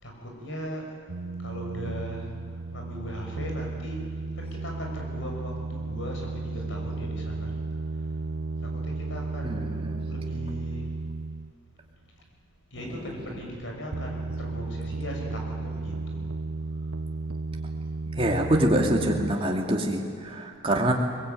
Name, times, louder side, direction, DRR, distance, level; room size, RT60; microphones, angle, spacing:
voice 1, 0.0-0.9 1.4-2.3 2.7-4.0 4.4-7.5 8.6-10.8 12.7-16.3, equal, 60° left, 1 dB, 6.1 m, -38 dB
sound 1, 1.1-11.8 13.9-19.4, right 3 dB, 80° right, 0.8 m, -34 dB
voice 2, 9.4-10.1 18.2-20.9, right 1 dB, 25° right, 0 dB, 2.6 m, -25 dB
23.0 x 21.0 x 9.2 m, 2.4 s
head